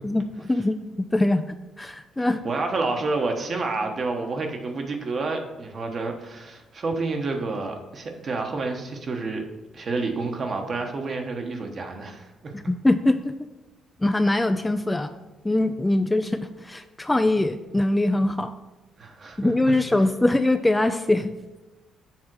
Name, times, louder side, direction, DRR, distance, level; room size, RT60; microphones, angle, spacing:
voice 1, 0.0-1.5 1.8-2.4 12.5-13.3 14.0-15.1 15.4-18.5 19.4-21.3, left 2 dB, 15° left, 9 dB, 0.4 m, -22 dB
voice 2, 2.4-9.4 9.7-12.5 19.0-19.5, right 3 dB, 45° right, 4 dB, 1.2 m, -29 dB
7.3 x 3.6 x 6.1 m, 1.1 s
cardioid pair, 90°, 0 cm